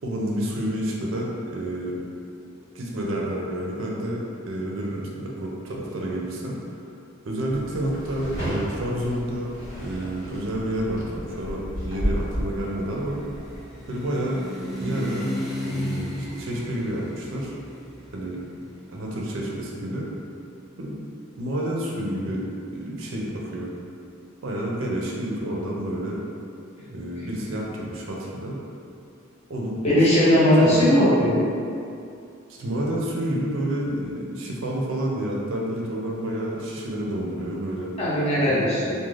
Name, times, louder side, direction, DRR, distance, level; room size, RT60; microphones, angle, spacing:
voice 1, 0.0-2.0 2.7-6.6 7.2-9.5 9.8-13.2 13.9-14.4 14.8-15.3 15.6-17.5 18.1-18.4 18.9-20.1 20.8-21.0 21.4-22.5 22.7-23.7 24.4-26.2 26.8-28.6 29.5-29.9 30.6-31.0 32.5-37.9 38.5-38.6, right 1 dB, 75° right, -3 dB, 0.5 m, -29 dB
sound 1, 7.5-13.6, equal, 60° left, 1.1 m, -32 dB
sound 2, 12.4-20.1, left 1 dB, ahead, 0.3 m, -35 dB
voice 2, 29.8-31.4 38.0-38.9, equal, 30° left, -9 dB, 0.7 m, -18 dB
2.4 x 2.1 x 3.1 m, 2.5 s
head